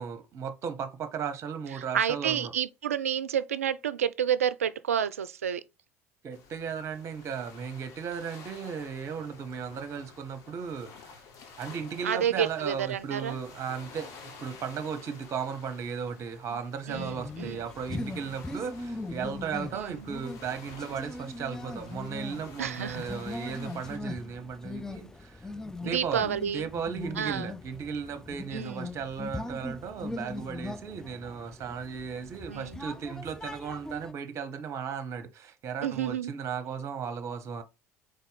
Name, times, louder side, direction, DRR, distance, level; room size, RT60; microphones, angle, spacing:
voice 1, 0.0-2.5 6.2-11.1 11.6-14.1 14.4-25.5 25.8-37.6, right 6 dB, 40° right, 0.8 m, -36 dB
voice 2, 1.7-5.6 12.0-13.4 16.5-16.6 16.9-17.6 19.7-20.1 22.6-23.1 25.8-26.7 27.2-27.5 28.5-28.9 32.5-32.8 35.8-36.3, right 9 dB, 85° right, 0.3 m, -30 dB
sound 1, 6.3-24.0, left 5 dB, 50° left, 1.4 m, -51 dB
sound 2, 16.9-34.1, left 2 dB, 5° left, 0.4 m, -40 dB
4.1 x 3.3 x 3.8 m
figure-of-eight pair, 70°, 8 cm